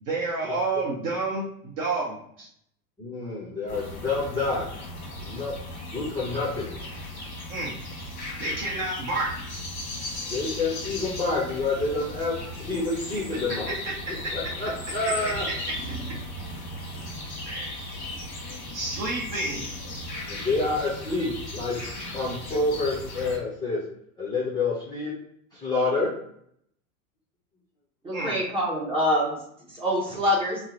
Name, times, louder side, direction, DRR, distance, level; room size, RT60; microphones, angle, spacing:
voice 1, 0.0-2.5 7.5-7.8 8.4-9.4 13.7-14.3 15.2-15.3 15.7-15.8 17.5-17.8 18.7-19.7 28.1-28.3, right 3 dB, 35° right, -3 dB, 0.7 m, -30 dB
voice 2, 3.0-4.6 5.2-5.5 5.9-6.7 10.3-13.7 14.1-15.5 20.3-21.8 22.1-23.8 24.2-25.1 25.5-26.1, left 3 dB, 10° left, -7 dB, 0.6 m, -28 dB
sound 1, 3.7-23.4, left 1 dB, 35° left, 1.1 m, -36 dB
voice 3, 28.0-29.4 29.7-30.6, left 1 dB, 10° right, -6 dB, 1.2 m, -25 dB
2.8 x 2.0 x 3.7 m, 0.68 s
hypercardioid pair, 110°, 45 cm